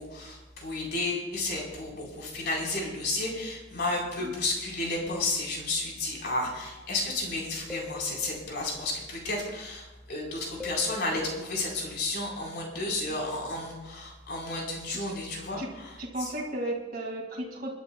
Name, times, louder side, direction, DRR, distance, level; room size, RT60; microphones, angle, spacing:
voice 1, 0.0-16.3, left 2 dB, 55° left, -1 dB, 4.0 m, -32 dB
sound 1, 7.7-8.8 10.6-11.3, left 6 dB, ahead, 1.6 m, -42 dB
voice 2, 16.0-17.7, right 1 dB, 45° right, -3 dB, 2.0 m, -34 dB
29.5 x 11.5 x 2.2 m, 1.2 s
head